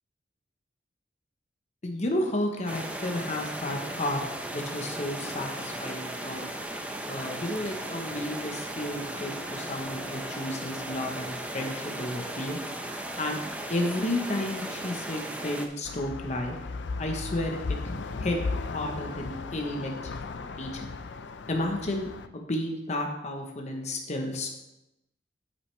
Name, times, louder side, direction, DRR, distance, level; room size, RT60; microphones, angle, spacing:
voice 1, 1.8-4.2 4.5-6.5 7.1-12.6 13.2-13.4 13.7-16.5 17.0-18.4 18.6-19.9 20.3-20.9 21.5-24.5, left 1 dB, 40° left, 2 dB, 1.0 m, -32 dB
sound 1, 2.7-15.7, right 1 dB, 10° right, 0.7 m, -36 dB
sound 2, 15.8-22.3, left 4 dB, 80° left, 0.5 m, -36 dB
8.6 x 8.3 x 3.3 m, 0.92 s
head